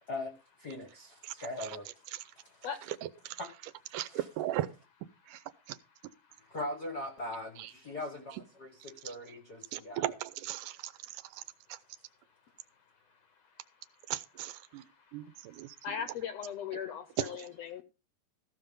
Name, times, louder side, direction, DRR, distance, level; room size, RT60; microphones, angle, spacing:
voice 1, 0.1-1.9 2.4-2.7 3.4-3.5 4.1-4.2 6.4-10.1, left 1 dB, 55° left, 1.1 m, -41 dB
voice 2, 1.2-1.8 2.1-2.2 3.3-3.4 3.9-4.7 5.3-5.8 7.6-7.7 8.3-8.4 9.1-9.2 9.7-11.4 11.7-11.8 14.1-14.9 15.1-15.8 17.2-17.5, right 14 dB, 80° right, 2.2 m, -38 dB
voice 3, 2.2-2.9 13.3-14.1 14.6-17.8, left 8 dB, 75° left, 1.6 m, -42 dB
15.0 x 5.8 x 5.3 m
omnidirectional pair, 3.8 m